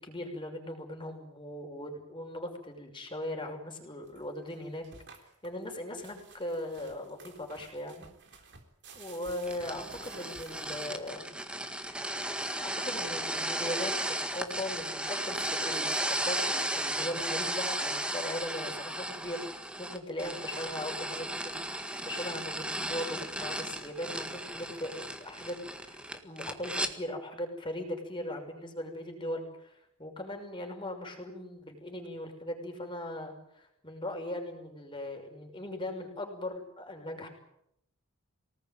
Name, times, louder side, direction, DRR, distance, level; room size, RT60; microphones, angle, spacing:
voice 1, 0.0-4.9 5.2-8.1 8.9-11.3 12.0-12.1 12.6-37.3, left 1 dB, 20° left, 3 dB, 5.9 m, -39 dB
sound 1, 4.0-11.3, right 4 dB, 50° right, 3.7 m, -54 dB
sound 2, 9.4-26.9, right 1 dB, 5° right, 1.7 m, -35 dB
25.5 x 19.0 x 9.2 m, 0.78 s
head